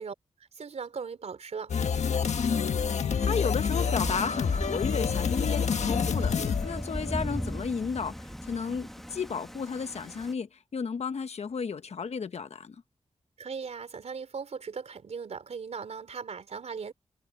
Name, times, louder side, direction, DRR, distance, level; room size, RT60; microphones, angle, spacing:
voice 1, 0.0-1.7 13.4-16.9, right 5 dB, 70° right, 3.8 m, -38 dB
sound 1, 1.7-7.4, left 6 dB, 90° left, 1.5 m, -28 dB
voice 2, 2.4-12.8, left 5 dB, 70° left, 1.2 m, -33 dB
Thunder / Rain, 3.7-10.3, equal, ahead, 1.5 m, -37 dB
wide cardioid pair, 125°, 11 cm